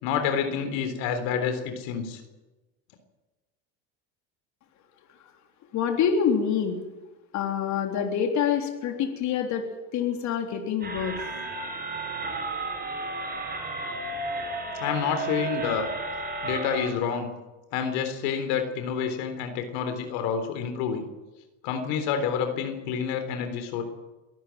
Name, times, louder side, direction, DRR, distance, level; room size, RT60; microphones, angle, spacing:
voice 1, 0.0-2.2 14.8-15.9 16.4-17.3 17.7-21.0 21.6-23.8, left 7 dB, 75° left, 7 dB, 3.8 m, -28 dB
voice 2, 5.7-6.8 7.3-9.6 9.9-11.2, left 7 dB, 55° left, 3 dB, 3.7 m, -26 dB
sound 1, 10.8-16.9, right 3 dB, 25° right, 6.6 m, -33 dB
23.5 x 14.0 x 9.2 m, 1.1 s
supercardioid pair, 105°, 34 cm